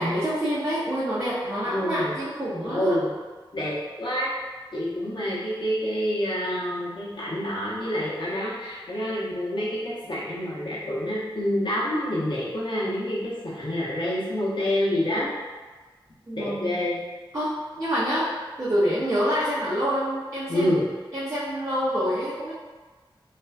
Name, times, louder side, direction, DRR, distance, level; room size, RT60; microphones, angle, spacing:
voice 1, 0.0-3.0 16.3-16.8 17.3-18.3 18.6-20.7 21.1-22.5, equal, 35° right, -9 dB, 0.5 m, -27 dB
voice 2, 1.7-2.1 2.6-3.1 3.5-4.3 4.7-15.3 16.4-17.0 20.5-20.8, left 1 dB, 60° left, -8 dB, 0.7 m, -27 dB
2.4 x 2.2 x 2.3 m, 1.3 s
wide cardioid pair, 60°, 9 cm